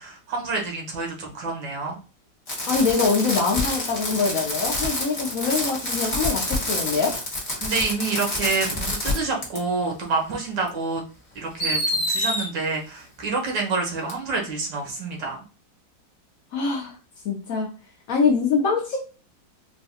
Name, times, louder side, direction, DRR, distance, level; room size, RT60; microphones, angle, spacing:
voice 1, 0.0-2.0 7.6-11.0 11.4-15.4, right 3 dB, 85° right, 0 dB, 1.8 m, -28 dB
Fireworks, 2.5-9.2 9.4-9.6 10.7-10.8 11.6-12.4 14.1-14.2, left 1 dB, 30° left, 1.2 m, -27 dB
voice 2, 2.7-7.2 16.5-16.9 17.2-17.7 18.1-19.0, left 4 dB, 65° left, 1 dB, 0.9 m, -24 dB
4.5 x 2.2 x 2.7 m, 0.35 s
omnidirectional pair, 1.9 m